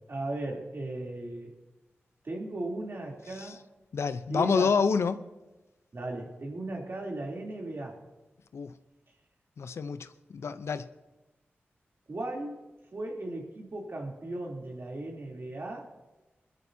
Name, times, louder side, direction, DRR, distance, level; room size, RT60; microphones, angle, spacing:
voice 1, 0.1-1.5 2.2-3.6 4.3-4.7 5.9-8.0 12.1-12.6 12.9-15.9, right 2 dB, 60° right, -1 dB, 3.1 m, -36 dB
voice 2, 3.9-5.2 8.5-8.7 9.6-10.9, left 5 dB, 80° left, 12 dB, 0.6 m, -28 dB
21.0 x 13.0 x 2.8 m, 1.1 s
cardioid pair, 40°, 5 cm